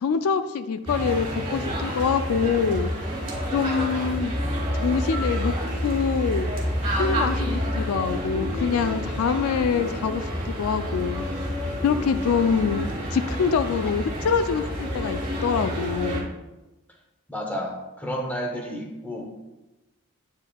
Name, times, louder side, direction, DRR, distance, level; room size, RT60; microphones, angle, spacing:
voice 1, 0.0-2.9 3.5-4.3 4.7-5.5 5.8-6.5 7.0-11.3 11.8-16.3, left 6 dB, 85° left, 11 dB, 0.3 m, -25 dB
sound 1, 0.9-16.2, equal, 25° right, 1.3 m, -28 dB
voice 2, 17.3-19.2, equal, 5° left, 0 dB, 0.7 m, -31 dB
8.1 x 5.3 x 2.3 m, 1.0 s
head